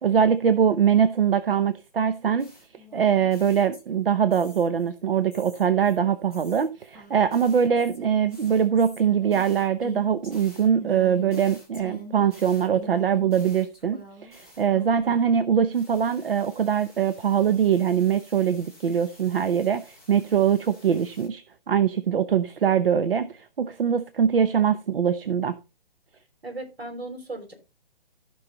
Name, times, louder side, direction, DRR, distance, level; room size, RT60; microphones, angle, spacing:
voice 1, 0.0-2.5 2.9-25.6, right 8 dB, 65° right, 0.8 m, -23 dB
sound 1, 2.4-4.9 5.3-15.4 15.7-21.3, equal, 5° right, 0.5 m, -47 dB
voice 2, 26.4-27.5, right 2 dB, 85° right, 5.9 m, -37 dB
14.5 x 5.6 x 4.0 m
hypercardioid pair, 150°, 30 cm